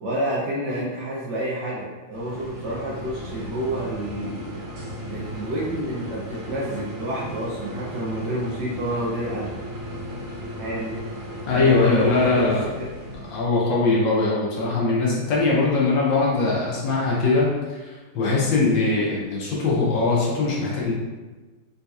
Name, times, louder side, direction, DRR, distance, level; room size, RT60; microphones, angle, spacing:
voice 1, 0.0-4.5 5.1-9.5 10.6-11.0 11.5-12.5 12.8-12.9, right 1 dB, 65° right, -6 dB, 1.1 m, -29 dB
sound 1, 2.1-13.5, equal, 85° right, 1.7 m, -36 dB
voice 2, 11.5-12.6 13.3-17.5 17.8-20.9, left 3 dB, 70° left, -5 dB, 1.3 m, -21 dB
4.1 x 2.7 x 2.3 m, 1.2 s
omnidirectional pair, 2.3 m